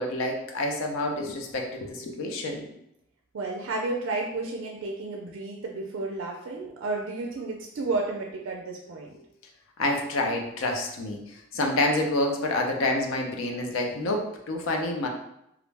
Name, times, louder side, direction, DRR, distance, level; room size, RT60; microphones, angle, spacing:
voice 1, 0.0-2.7 9.8-15.1, left 2 dB, 80° left, 2 dB, 0.4 m, -28 dB
voice 2, 3.3-9.1, right 3 dB, 70° right, 0 dB, 0.3 m, -32 dB
2.4 x 2.0 x 3.2 m, 0.81 s
head